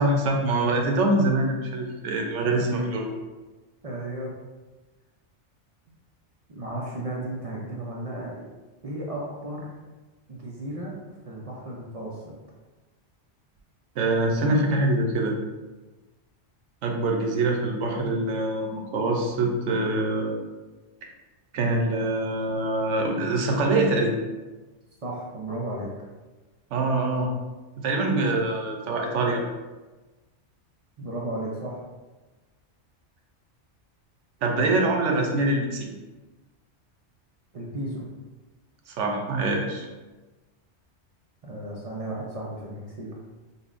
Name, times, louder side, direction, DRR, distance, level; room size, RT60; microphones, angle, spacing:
voice 1, 0.0-3.1 14.0-15.4 16.8-20.3 21.5-24.2 26.7-27.3 27.8-29.4 34.4-35.9 38.9-39.9, right 2 dB, 90° right, 2 dB, 0.9 m, -24 dB
voice 2, 2.4-3.0 3.8-4.3 6.5-8.5 8.8-9.8 10.3-11.0 11.3-12.3 25.0-25.9 31.0-31.8 37.5-38.1 41.4-43.2, right 1 dB, 55° right, -3 dB, 0.4 m, -34 dB
5.3 x 2.1 x 2.4 m, 1.2 s
omnidirectional pair, 1.2 m